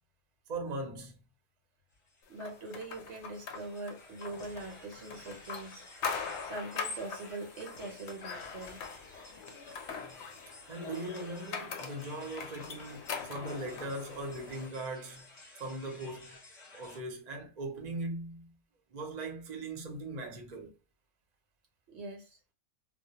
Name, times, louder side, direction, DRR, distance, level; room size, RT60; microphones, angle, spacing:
voice 1, 0.5-1.2 10.7-15.3 15.6-16.4 16.7-18.6 18.9-20.7, right 2 dB, 40° right, 0.7 m, -39 dB
sound 1, 2.0-17.0, left 2 dB, 30° left, 0.8 m, -54 dB
voice 2, 2.3-5.8 6.4-8.8 21.9-22.4, right 2 dB, 65° right, 0.8 m, -42 dB
sound 2, 2.4-14.7, left 5 dB, 65° left, 0.8 m, -42 dB
2.2 x 2.1 x 2.8 m
omnidirectional pair, 1.4 m